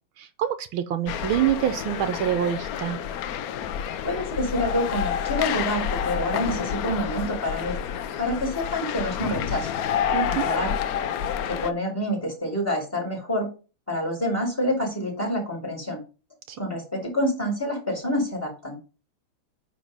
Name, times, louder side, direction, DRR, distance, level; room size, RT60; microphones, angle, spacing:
voice 1, 0.2-3.0 10.1-10.5 16.5-16.6, right 10 dB, 80° right, 10 dB, 1.5 m, -26 dB
sound 1, 1.1-11.7, left 8 dB, 85° left, 0.8 m, -29 dB
voice 2, 4.0-7.8 8.2-9.7 10.3-10.7 11.5-13.5 13.9-16.0 16.6-18.8, left 1 dB, 5° left, 0 dB, 4.1 m, -27 dB
9.3 x 3.9 x 5.4 m, 0.33 s
omnidirectional pair, 2.3 m